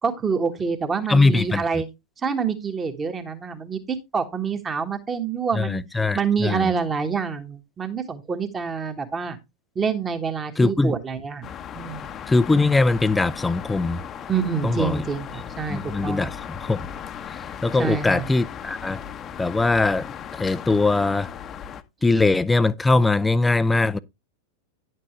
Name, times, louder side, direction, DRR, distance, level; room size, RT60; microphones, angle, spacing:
voice 1, 0.0-1.9 2.2-5.8 6.1-9.4 9.7-11.5 11.7-12.1 14.3-16.3 17.7-18.3, right 6 dB, 20° right, 1.4 m, -27 dB
voice 2, 1.1-1.6 5.6-6.7 10.6-10.9 12.3-14.0 14.6-15.0 15.7-16.8 17.6-19.0 19.4-20.1 20.3-21.3 22.0-24.0, left 3 dB, 10° left, 0.5 m, -21 dB
sound 1, 11.4-21.8, left 8 dB, 25° left, 0.9 m, -37 dB
10.5 x 7.5 x 3.2 m
figure-of-eight pair, 90°, 0 cm